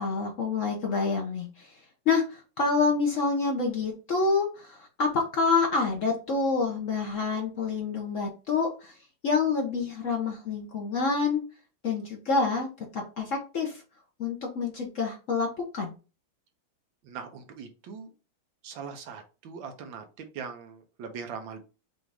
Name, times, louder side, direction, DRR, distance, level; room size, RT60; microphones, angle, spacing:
voice 1, 0.0-1.8 2.1-9.0 9.2-11.4 11.8-12.7 12.9-13.8 14.2-15.5 15.7-15.9, left 4 dB, 75° left, 1 dB, 0.7 m, -27 dB
voice 2, 17.0-18.1 18.6-21.6, right 6 dB, 70° right, 6 dB, 1.4 m, -41 dB
6.1 x 2.5 x 3.3 m, 0.33 s
omnidirectional pair, 2.4 m